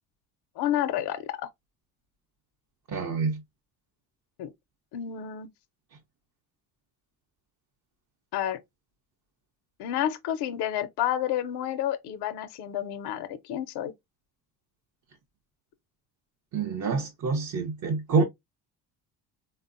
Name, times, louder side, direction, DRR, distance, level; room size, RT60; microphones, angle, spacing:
voice 1, 0.6-1.3 4.4-4.5 4.9-5.5 8.3-8.6 9.8-13.9, left 11 dB, 65° left, 0.6 m, -30 dB
voice 2, 2.9-3.4 16.5-18.2, right 4 dB, 45° right, 0.7 m, -27 dB
3.5 x 2.1 x 2.4 m
hypercardioid pair, 60°, 44 cm